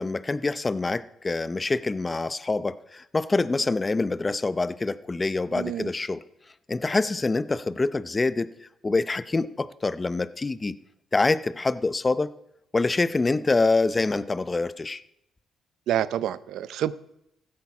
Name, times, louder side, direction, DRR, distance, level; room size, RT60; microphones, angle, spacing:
voice 1, 0.0-6.2 6.7-8.5 8.8-10.8 11.1-12.3 12.7-15.0, left 3 dB, 25° left, 15 dB, 0.6 m, -25 dB
voice 2, 5.5-5.9 15.9-16.9, right 11 dB, 80° right, 16 dB, 0.6 m, -28 dB
15.0 x 8.7 x 5.9 m, 0.81 s
cardioid pair, 90°, 0 cm